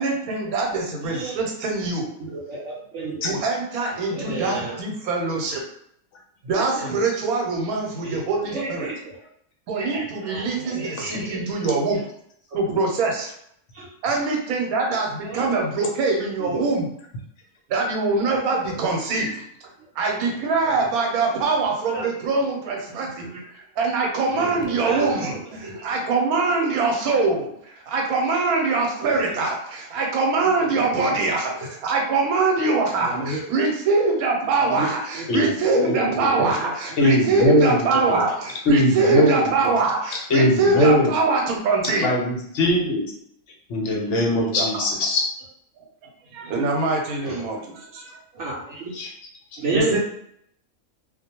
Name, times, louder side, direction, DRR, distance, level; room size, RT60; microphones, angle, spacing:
voice 1, 0.0-2.1 3.2-5.6 6.4-8.9 9.7-12.0 12.5-13.3 14.0-16.9 17.7-19.3 20.0-23.2 23.8-42.1 44.6-44.7 46.3-48.2 49.7-50.0, right 3 dB, 80° right, 0 dB, 1.1 m, -23 dB
voice 2, 1.0-1.4 2.2-3.4 3.9-4.8 6.5-7.0 8.0-8.2 8.4-9.2 9.8-11.4 12.5-12.8 13.7-13.9 15.2-15.6 16.4-16.8 18.2-18.8 20.6-20.9 21.3-21.5 21.9-22.3 23.0-23.4 24.3-25.8 29.0-29.4 30.4-31.7 33.0-33.4 34.6-35.3 35.8-37.0 37.9-38.3 39.6-39.8 47.2-47.4 48.3-48.9 49.6-50.0, right 2 dB, 65° right, -4 dB, 0.8 m, -32 dB
voice 3, 35.3-36.2 37.0-37.9 38.7-39.5 40.3-41.1 42.0-43.0 43.7-45.2 48.9-49.1, left 1 dB, 65° left, -1 dB, 0.9 m, -20 dB
2.4 x 2.1 x 2.8 m, 0.69 s
omnidirectional pair, 1.5 m